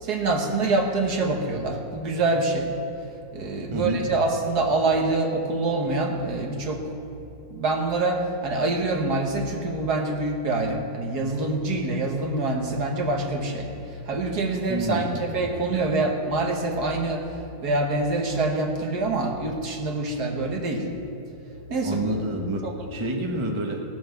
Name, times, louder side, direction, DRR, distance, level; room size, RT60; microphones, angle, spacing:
voice 1, 0.0-2.7 3.3-6.9 7.1-7.2 7.5-13.7 14.0-17.3 17.6-20.9 21.7-22.1 22.6-22.7, right 2 dB, 70° right, 2 dB, 1.9 m, -25 dB
voice 2, 3.7-4.0 14.7-15.3 21.8-23.8, right 1 dB, 20° right, 1 dB, 1.1 m, -28 dB
17.0 x 7.7 x 7.0 m, 2.9 s
omnidirectional pair, 1.8 m